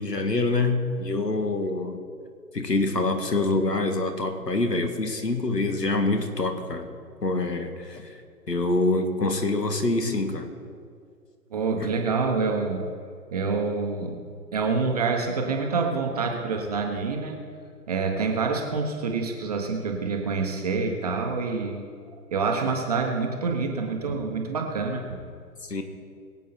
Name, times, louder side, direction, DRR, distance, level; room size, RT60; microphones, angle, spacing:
voice 1, 0.0-2.0 2.5-6.9 7.2-8.1 8.5-10.5 25.7-25.8, left 2 dB, 75° left, 6 dB, 1.9 m, -25 dB
voice 2, 11.5-12.8 13.3-14.2 14.5-17.4 17.9-21.9 22.1-25.2, right 4 dB, 25° right, 3 dB, 1.1 m, -27 dB
22.0 x 8.3 x 4.3 m, 2.2 s
figure-of-eight pair, 140°, 49 cm